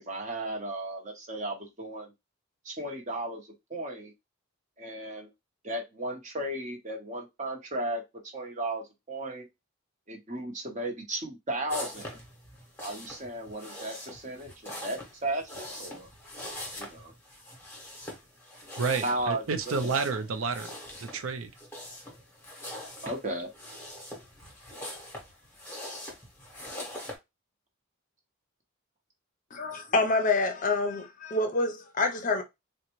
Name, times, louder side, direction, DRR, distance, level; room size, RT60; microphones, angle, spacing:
voice 1, 0.0-2.1 2.6-4.1 4.8-5.3 5.6-8.0 8.3-9.5 10.1-12.2 12.8-16.1 16.8-17.1 19.0-19.4 23.0-23.5 25.7-25.8, right 1 dB, 35° right, 0.9 m, -35 dB
sound 1, 11.7-27.2, left 1 dB, 10° left, 0.9 m, -43 dB
voice 2, 18.8-21.5, right 4 dB, 75° right, 0.5 m, -30 dB
voice 3, 29.5-32.4, left 3 dB, 35° left, 0.6 m, -27 dB
3.9 x 2.2 x 3.0 m
head